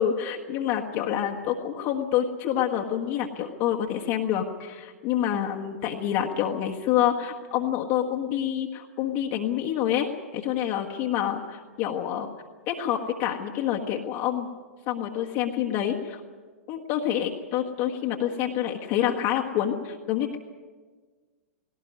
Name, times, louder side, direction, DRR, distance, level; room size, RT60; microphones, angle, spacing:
voice 1, 0.0-12.3 12.7-14.5 14.9-16.2 16.7-20.4, left 10 dB, 40° left, 0 dB, 1.6 m, -27 dB
19.0 x 18.0 x 9.5 m, 1.4 s
figure-of-eight pair, 100°, 8 cm